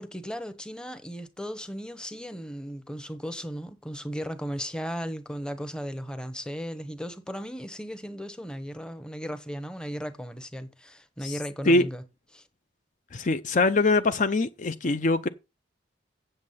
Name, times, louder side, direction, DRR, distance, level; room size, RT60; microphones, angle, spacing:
voice 1, 0.0-12.0 12.3-12.4, equal, 5° left, 1.0 m, -36 dB
voice 2, 13.1-15.3, left 2 dB, 45° left, 0.6 m, -23 dB
8.0 x 7.5 x 5.6 m
head